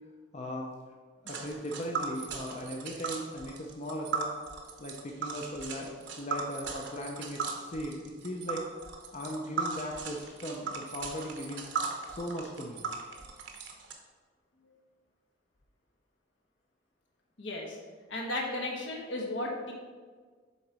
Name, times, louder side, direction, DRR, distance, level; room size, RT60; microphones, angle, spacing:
voice 1, 0.3-0.7 1.2-4.3 4.8-8.7 9.1-11.6 12.1-12.9, equal, 35° left, 0 dB, 0.6 m, -38 dB
Tick, 1.3-13.9, right 5 dB, 65° right, 0.8 m, -38 dB
voice 2, 17.4-17.8 18.1-19.7, left 1 dB, 75° left, -1 dB, 1.3 m, -34 dB
7.1 x 3.9 x 4.7 m, 1.5 s
head